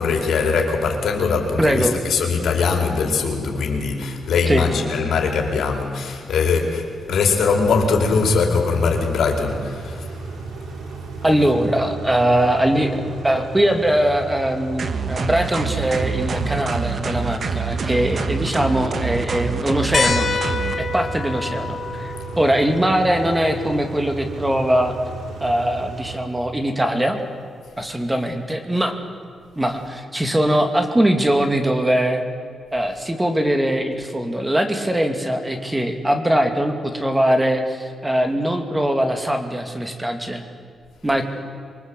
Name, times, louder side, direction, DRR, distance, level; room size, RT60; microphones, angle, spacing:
voice 1, 0.0-10.2 11.4-11.5, left 4 dB, 75° left, 4.7 m, -21 dB
voice 2, 1.6-2.0 4.5-4.7 11.2-20.3 20.8-21.8 22.0-24.9 25.4-27.2 27.8-29.0 29.6-32.2 32.7-40.4 41.0-41.2, right 1 dB, 10° right, 2.6 m, -21 dB
Car / Idling / Accelerating revving vroom, 7.1-26.2, right 4 dB, 70° right, 3.0 m, -34 dB
sound 1, 14.8-20.8, right 5 dB, 45° right, 1.7 m, -26 dB
sound 2, 19.9-25.0 26.5-26.6 28.3-28.4, left 5 dB, 40° left, 1.7 m, -28 dB
27.0 x 23.5 x 8.4 m
wide cardioid pair, 145°, 0 cm